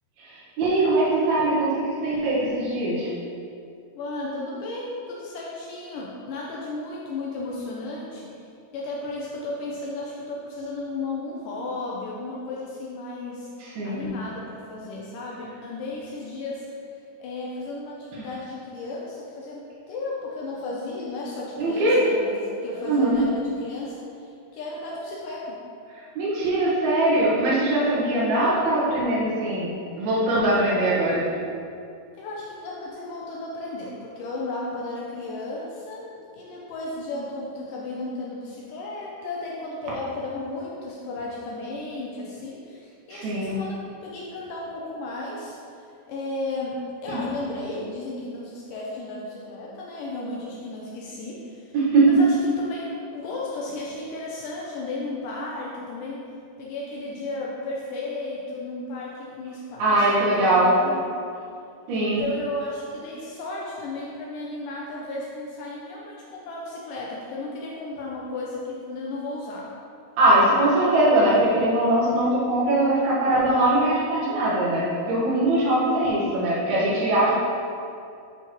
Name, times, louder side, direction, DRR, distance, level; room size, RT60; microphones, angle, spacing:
voice 1, 0.2-3.1 13.6-14.1 18.2-18.3 21.6-22.0 22.8-23.2 26.1-29.7 30.0-31.3 43.1-43.6 47.1-47.2 51.7-52.1 59.8-60.7 61.9-62.2 70.2-77.3, right 1 dB, 75° right, -8 dB, 3.4 m, -21 dB
voice 2, 3.9-13.5 13.8-25.6 32.1-51.7 52.0-56.3 56.6-61.1 61.9-69.7 75.6-75.8, left 2 dB, 85° left, -3 dB, 1.9 m, -34 dB
10.0 x 4.0 x 3.1 m, 2.5 s
omnidirectional pair, 4.5 m